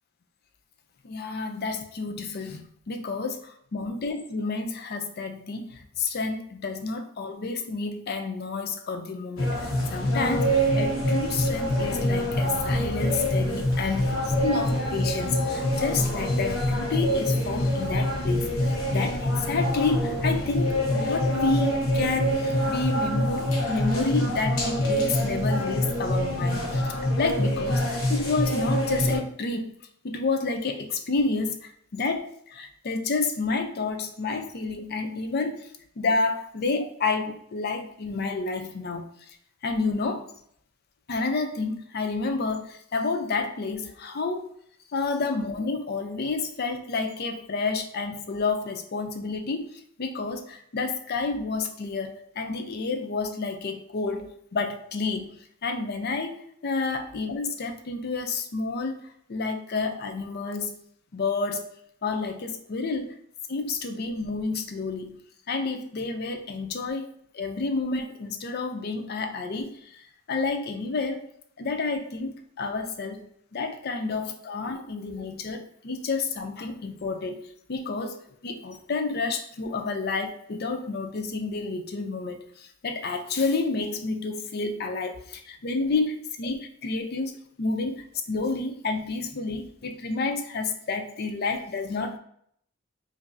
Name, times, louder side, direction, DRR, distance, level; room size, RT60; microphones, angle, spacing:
voice 1, 1.0-29.7 30.0-39.4 39.6-40.3 41.1-44.5 44.9-59.0 59.3-60.7 61.1-61.7 62.0-63.2 63.5-65.2 65.5-71.2 71.6-73.3 73.5-77.4 77.7-78.2 78.4-92.2, left 3 dB, 50° left, 6 dB, 0.5 m, -30 dB
sound 1, 9.4-29.2, equal, 80° left, 1.0 m, -25 dB
5.0 x 2.6 x 2.6 m, 0.65 s
head